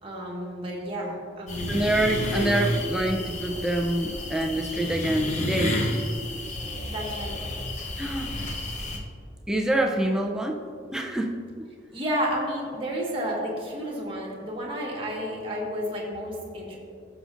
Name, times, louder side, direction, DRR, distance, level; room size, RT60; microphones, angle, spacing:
voice 1, 0.0-1.9 6.9-7.4 11.9-16.8, equal, 30° right, -3 dB, 1.5 m, -31 dB
sound 1, 1.5-9.0, left 1 dB, 40° left, 0.8 m, -30 dB
voice 2, 1.7-5.8 8.0-8.3 9.5-10.6 10.9-11.4, right 1 dB, 5° right, 1 dB, 0.5 m, -26 dB
13.0 x 6.4 x 2.6 m, 2.2 s
head